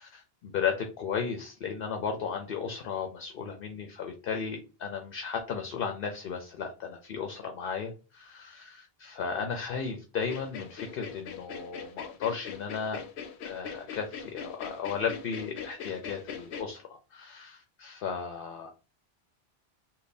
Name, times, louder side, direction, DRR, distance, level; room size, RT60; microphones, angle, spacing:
voice 1, 0.0-13.0 13.4-18.7, left 6 dB, 65° left, 4 dB, 0.7 m, -35 dB
sound 1, 10.2-16.6, left 6 dB, 90° left, 0.9 m, -41 dB
3.3 x 2.2 x 4.0 m, 0.32 s
omnidirectional pair, 1.1 m